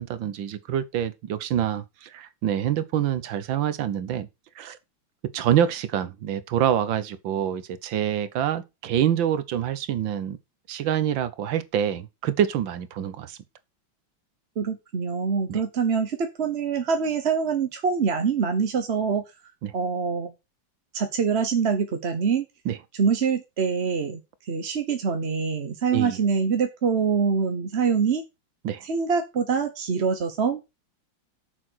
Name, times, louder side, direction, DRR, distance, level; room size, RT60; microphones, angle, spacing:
voice 1, 0.0-4.3 4.6-4.8 5.3-10.4 10.7-13.4 15.5-15.6 19.6-19.7 22.6-22.8 25.9-26.2 28.6-28.8, right 10 dB, 75° right, 1.6 m, -26 dB
voice 2, 14.6-19.2 19.7-20.3 20.9-22.4 23.0-24.2 24.5-28.2 28.8-30.6, right 6 dB, 40° right, 1.0 m, -24 dB
8.5 x 6.9 x 6.2 m
omnidirectional pair, 2.1 m